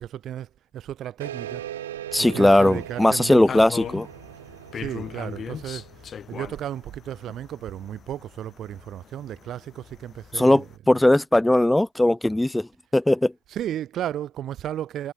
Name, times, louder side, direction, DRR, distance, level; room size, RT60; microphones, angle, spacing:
voice 1, 0.0-1.6 2.2-3.6 4.7-10.7 13.5-15.1, right 11 dB, 30° right, 1.4 m, -34 dB
sound 1, 1.2-6.3, right 12 dB, 60° right, 1.5 m, -39 dB
sound 2, 2.1-10.8, left 7 dB, 20° left, 5.7 m, -40 dB
voice 2, 2.1-4.1 10.3-12.7 12.9-13.3, left 1 dB, 5° left, 0.7 m, -19 dB
figure-of-eight pair, 90°, 0 cm